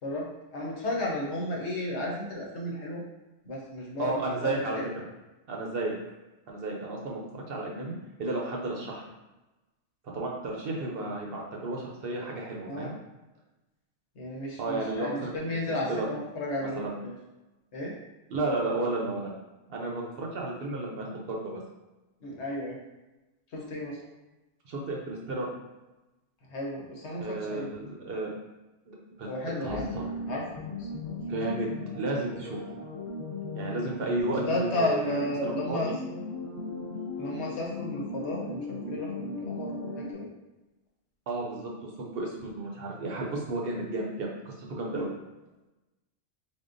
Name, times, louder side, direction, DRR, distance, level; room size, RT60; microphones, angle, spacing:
voice 1, 0.0-3.0 3.4-4.9 12.7-12.9 14.2-17.1 17.7-17.9 22.2-22.8 23.5-24.0 26.5-27.7 29.2-29.9 30.3-30.4 30.8-30.9 34.3-35.9 37.2-40.3 44.9-45.1, left 1 dB, 70° left, -2 dB, 1.2 m, -33 dB
voice 2, 4.0-5.0 5.5-6.0 6.5-7.9 8.2-9.0 10.1-12.9 14.6-16.1 16.6-17.0 18.3-19.3 19.7-21.6 24.7-25.5 27.2-28.3 28.9-29.3 29.6-30.0 31.3-31.7 31.9-32.6 33.5-36.0 41.3-45.1, right 2 dB, 60° right, -1 dB, 0.8 m, -33 dB
Cosmic minimal music fragment, 29.7-40.1, left 2 dB, 20° left, 0.5 m, -37 dB
3.8 x 3.5 x 2.5 m, 1.1 s
omnidirectional pair, 1.2 m